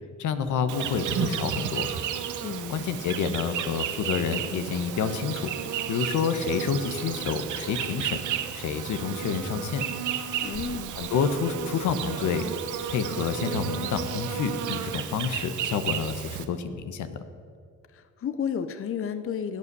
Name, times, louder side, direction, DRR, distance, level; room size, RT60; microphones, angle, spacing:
voice 1, 0.2-1.9 2.7-5.5 5.9-8.2 8.5-9.8 10.9-12.5 12.9-17.2, left 6 dB, 80° left, 9 dB, 1.2 m, -28 dB
Insect, 0.7-16.4, right 9 dB, 75° right, 1.1 m, -33 dB
voice 2, 2.4-2.9 10.4-10.9 17.9-19.6, left 7 dB, 45° left, 10 dB, 0.8 m, -32 dB
16.5 x 8.6 x 6.9 m, 2.2 s
cardioid pair, 90°, 30 cm